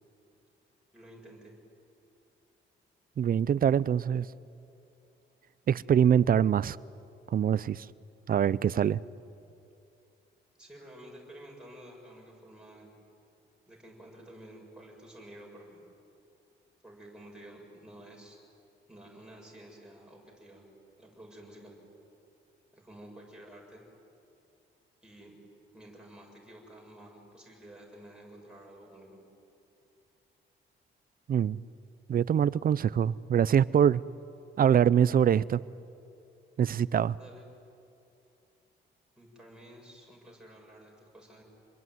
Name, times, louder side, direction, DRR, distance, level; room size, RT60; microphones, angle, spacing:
voice 1, 0.9-1.5 10.6-12.9 13.7-15.8 16.8-18.4 18.9-20.7 21.0-21.8 22.7-23.8 25.0-25.3 25.7-29.2 37.2-37.4 39.2-41.4, right 1 dB, 5° right, 7.4 m, -51 dB
voice 2, 3.2-4.3 5.7-6.8 7.3-7.9 8.3-9.0 31.3-31.6 32.1-34.0 34.6-35.6 36.6-37.2, right 8 dB, 45° right, 0.7 m, -24 dB
28.0 x 21.5 x 9.5 m
cardioid pair, 90°, 20 cm